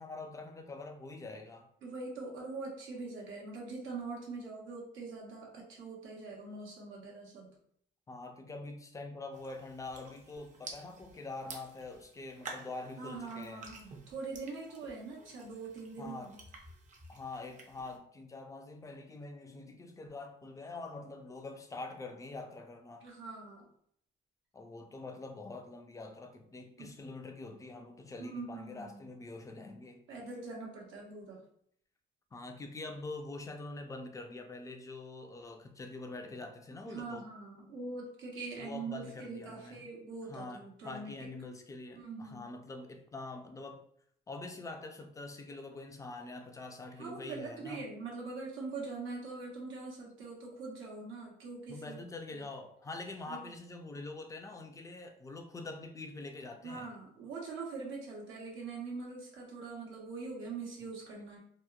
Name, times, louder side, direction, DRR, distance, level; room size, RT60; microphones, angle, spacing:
voice 1, 0.0-1.7 8.1-13.7 16.0-16.4 17.1-23.1 24.5-30.1 32.3-37.3 38.5-39.9 40.3-43.8 44.3-47.9 51.7-56.9, left 3 dB, 15° left, 0.4 m, -45 dB
voice 2, 1.8-7.5 13.0-16.4 23.0-23.7 26.8-26.9 28.2-29.1 30.1-31.4 36.8-41.1 41.9-42.5 46.9-52.0 52.4-52.5 53.3-53.4 56.6-61.4, right 3 dB, 80° right, 0.9 m, -43 dB
sound 1, 9.3-18.0, right 3 dB, 40° right, 0.6 m, -51 dB
2.8 x 2.1 x 2.3 m
cardioid pair, 90°, 20 cm